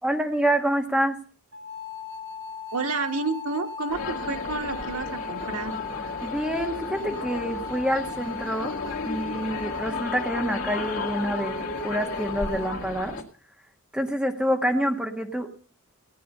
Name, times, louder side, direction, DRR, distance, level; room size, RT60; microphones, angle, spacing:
voice 1, 0.0-1.1 6.2-8.7 9.0-13.2 13.9-15.5, equal, 5° right, 3 dB, 1.6 m, -27 dB
sound 1, 1.5-12.7, left 5 dB, 60° right, 1.6 m, -38 dB
voice 2, 2.7-5.8, right 3 dB, 85° right, 4 dB, 1.5 m, -30 dB
sound 2, 3.9-13.2, left 3 dB, 70° left, 2.3 m, -34 dB
18.0 x 9.2 x 5.4 m, 0.43 s
head